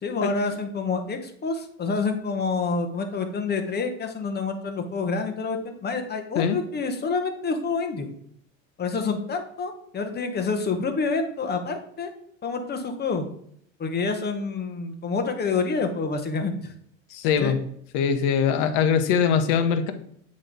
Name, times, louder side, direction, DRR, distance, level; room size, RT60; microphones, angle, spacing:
voice 1, 0.0-8.1 8.8-12.1 12.4-13.3 13.8-16.7 17.2-17.6, left 4 dB, 25° left, 6 dB, 1.0 m, -28 dB
voice 2, 17.1-17.6 17.9-19.9, left 7 dB, 60° left, 9 dB, 0.9 m, -22 dB
8.0 x 3.2 x 3.9 m, 0.66 s
supercardioid pair, 100°, 40 cm